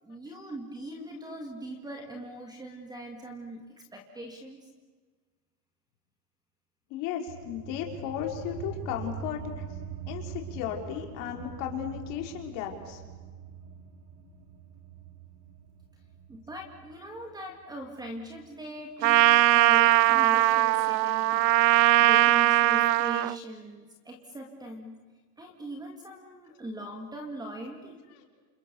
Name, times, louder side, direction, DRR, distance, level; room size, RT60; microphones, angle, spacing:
voice 1, 0.0-3.6 3.9-4.7 16.3-21.6 22.0-24.9 25.4-28.0, right 1 dB, 10° right, 3 dB, 2.1 m, -41 dB
voice 2, 6.9-9.7 10.1-13.0 28.1-28.3, left 9 dB, 40° left, 3 dB, 4.3 m, -35 dB
sound 1, 7.3-18.4, right 5 dB, 55° right, 3.1 m, -43 dB
Trumpet, 19.0-23.3, right 17 dB, 85° right, 0.8 m, -20 dB
29.5 x 28.0 x 6.9 m, 1.4 s
supercardioid pair, 170°, 50 cm